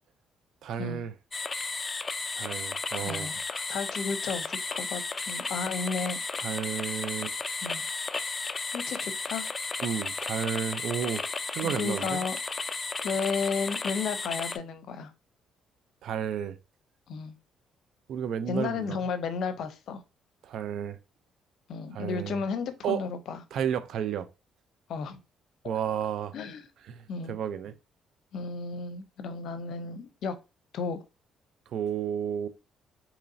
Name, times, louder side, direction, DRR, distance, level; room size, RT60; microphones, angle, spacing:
voice 1, 0.6-1.1 2.3-3.3 6.4-7.3 9.8-11.2 11.5-12.2 16.0-16.6 18.1-19.0 20.4-21.0 21.9-22.4 22.8-23.0 23.5-24.3 25.6-26.3 26.9-27.7 31.7-32.5, right 8 dB, 70° right, 0.4 m, -32 dB
sound 1, 1.3-14.6, left 3 dB, 30° left, 0.3 m, -34 dB
voice 2, 3.0-6.2 7.6-7.8 8.7-9.5 11.6-12.4 13.0-15.1 17.1-17.3 18.5-20.0 21.7-23.4 24.9-25.2 25.6-25.7 26.3-26.7 27.1-27.3 28.3-30.4 30.7-31.0, left 5 dB, 70° left, 0.6 m, -33 dB
3.9 x 3.0 x 2.6 m
supercardioid pair, 75°, 0 cm